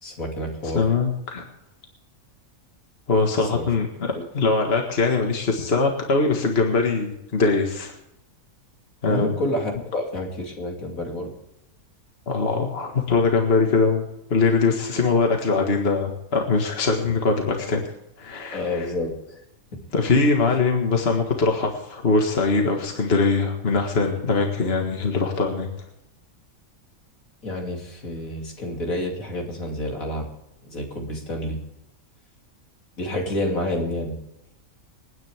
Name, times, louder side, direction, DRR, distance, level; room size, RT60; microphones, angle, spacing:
voice 1, 0.0-0.8 3.5-3.7 4.1-4.2 9.0-11.3 18.5-19.4 19.7-19.8 27.4-30.3 30.7-31.6 33.0-34.2, left 1 dB, 70° left, 1 dB, 3.3 m, -29 dB
voice 2, 0.6-1.4 3.1-7.9 9.0-9.3 12.3-17.8 18.2-18.9 19.9-25.7, left 4 dB, 45° left, 2 dB, 1.9 m, -22 dB
27.5 x 9.6 x 3.6 m, 0.85 s
omnidirectional pair, 1.5 m